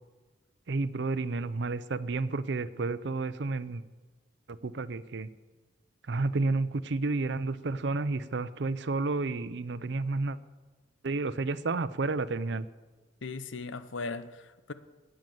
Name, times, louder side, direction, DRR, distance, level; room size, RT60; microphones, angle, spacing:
voice 1, 0.7-3.8 4.5-5.3 6.1-10.4 11.0-12.7, right 3 dB, 65° right, 15 dB, 0.6 m, -31 dB
voice 2, 13.2-14.7, left 3 dB, 85° left, 13 dB, 0.8 m, -38 dB
12.5 x 9.0 x 7.8 m, 1.3 s
head